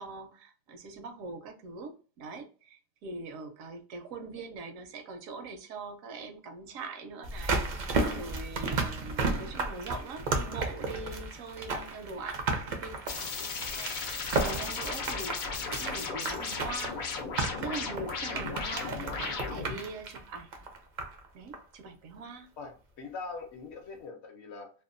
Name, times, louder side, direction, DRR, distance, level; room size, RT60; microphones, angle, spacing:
voice 1, 0.0-17.0 17.6-20.5 21.3-22.5, right 3 dB, 80° right, 1.0 m, -42 dB
sound 1, 7.2-21.3 21.5-21.6, right 3 dB, 60° right, 0.5 m, -33 dB
sound 2, 13.1-19.8, left 5 dB, 85° left, 0.4 m, -36 dB
voice 2, 22.6-24.7, left 4 dB, 65° left, 0.8 m, -42 dB
2.7 x 2.2 x 2.4 m
omnidirectional pair, 1.4 m